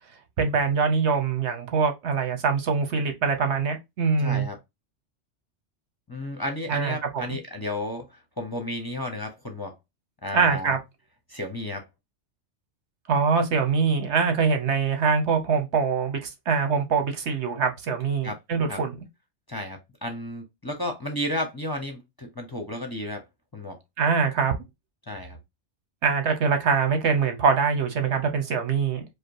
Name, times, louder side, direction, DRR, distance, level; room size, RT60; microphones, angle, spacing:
voice 1, 0.4-4.5 6.7-7.3 10.3-10.8 13.1-19.0 24.0-24.5 26.0-29.0, right 5 dB, 70° right, 1.2 m, -24 dB
voice 2, 4.2-4.6 6.1-9.7 10.2-10.7 11.3-11.8 18.2-18.4 18.7-18.8 19.5-23.2 23.5-23.8 25.1-25.4, left 1 dB, 20° left, 0.8 m, -32 dB
5.1 x 2.2 x 4.7 m
omnidirectional pair, 1.2 m